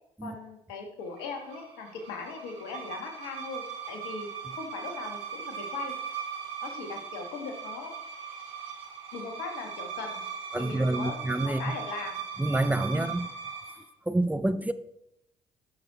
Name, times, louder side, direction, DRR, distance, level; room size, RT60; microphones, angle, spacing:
voice 1, 0.2-4.3 4.6-6.0 6.6-7.9 9.1-10.2 10.5-12.2 12.9-13.2, left 4 dB, 75° left, 1.9 m, -39 dB
sound 1, 1.1-13.8, right 7 dB, 85° right, 2.1 m, -39 dB
voice 2, 10.5-11.6 12.4-13.3 14.1-14.7, right 2 dB, 10° right, 0.7 m, -27 dB
12.5 x 6.4 x 4.3 m
hypercardioid pair, 50°, 16 cm